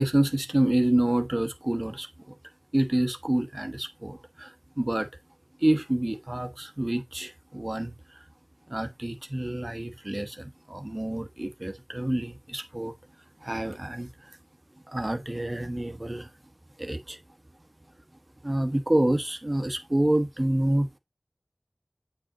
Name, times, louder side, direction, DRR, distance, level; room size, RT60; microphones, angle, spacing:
voice 1, 0.0-2.1 2.7-5.1 5.6-7.9 8.7-12.9 13.4-14.4 14.9-16.3 16.8-17.2 18.4-21.0, right 1 dB, 30° right, 1.0 m, -27 dB
8.7 x 5.1 x 2.9 m
wide cardioid pair, 55°, 0 cm